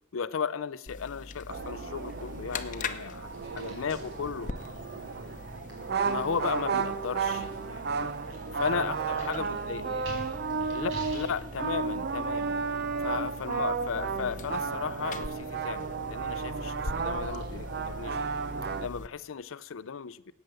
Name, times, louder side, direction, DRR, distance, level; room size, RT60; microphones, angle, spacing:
voice 1, 0.1-4.5 6.0-8.1 8.6-9.8 10.7-12.6 13.0-18.2 18.8-20.3, left 6 dB, 90° left, 0.5 m, -35 dB
sound 1, 0.9-19.1, left 3 dB, 40° left, 0.8 m, -43 dB
sound 2, 1.3-18.2, right 1 dB, 80° right, 4.5 m, -51 dB
sound 3, 1.5-18.9, right 5 dB, 55° right, 0.6 m, -33 dB
voice 2, 3.4-3.8 7.5-7.8 8.4-10.7 13.0-13.3 16.3-16.5, equal, 30° right, 5.6 m, -49 dB
13.0 x 9.0 x 7.7 m
head